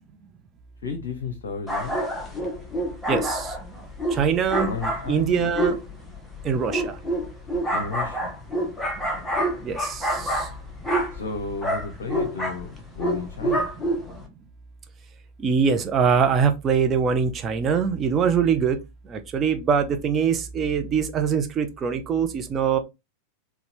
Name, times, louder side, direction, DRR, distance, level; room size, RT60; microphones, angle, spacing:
voice 1, 0.8-2.0 4.7-5.6 7.7-8.3 11.1-13.7, left 4 dB, 60° left, 0.7 m, -33 dB
sound 1, 1.7-14.3, right 1 dB, 5° left, 0.9 m, -28 dB
voice 2, 3.1-3.5 4.1-4.7 5.1-5.8 6.4-7.0 9.6-10.5 15.4-18.8 19.1-22.8, right 6 dB, 25° right, 0.6 m, -23 dB
3.9 x 2.3 x 2.9 m
figure-of-eight pair, 90°, 0 cm